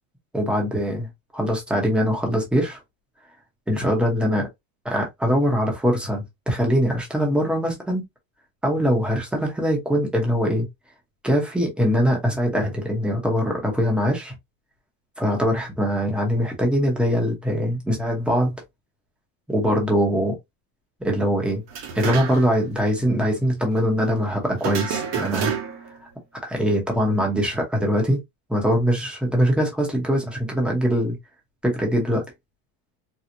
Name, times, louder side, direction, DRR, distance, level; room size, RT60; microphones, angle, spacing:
voice 1, 0.3-1.1 1.3-2.8 3.7-4.5 4.8-8.0 8.6-10.7 11.2-14.3 15.2-18.5 19.5-20.4 21.0-21.6 21.9-25.5 26.4-28.2 28.5-31.2 31.6-32.2, equal, ahead, 0.7 m, -22 dB
sound 1, 21.7-22.6 22.9-23.0 24.6-26.0, right 7 dB, 55° right, 1.0 m, -29 dB
4.4 x 2.1 x 2.5 m
cardioid pair, 170°, 47 cm